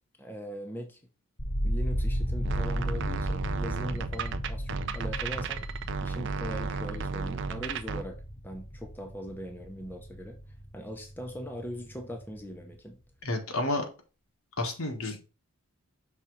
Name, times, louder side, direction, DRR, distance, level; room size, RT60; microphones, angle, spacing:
voice 1, 0.2-1.0 1.6-5.7 6.0-8.2 8.4-10.4 10.7-13.0, equal, 10° left, 0.7 m, -40 dB
sound 1, 1.4-11.4 11.7-12.4, equal, 40° left, 1.0 m, -34 dB
sound 2, 2.4-8.0, right 5 dB, 55° right, 0.5 m, -34 dB
sound 3, 2.7-12.7, right 1 dB, 25° right, 0.8 m, -52 dB
voice 2, 13.2-13.9 14.6-15.2, left 2 dB, 70° left, 1.5 m, -30 dB
5.9 x 3.7 x 4.6 m
head